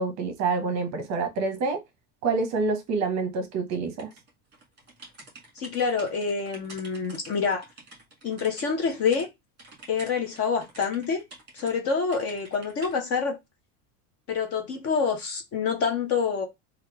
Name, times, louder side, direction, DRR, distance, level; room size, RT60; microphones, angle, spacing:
voice 1, 0.0-1.8 2.2-4.1, right 4 dB, 35° right, 0.8 m, -27 dB
sound 1, 4.0-9.3 9.6-11.7 12.1-12.9, right 2 dB, 20° right, 1.5 m, -48 dB
voice 2, 5.6-7.6 8.2-9.3 9.9-11.2 11.5-13.4 14.3-16.5, left 5 dB, 35° left, 0.6 m, -27 dB
2.9 x 2.4 x 3.2 m
supercardioid pair, 150°, 46 cm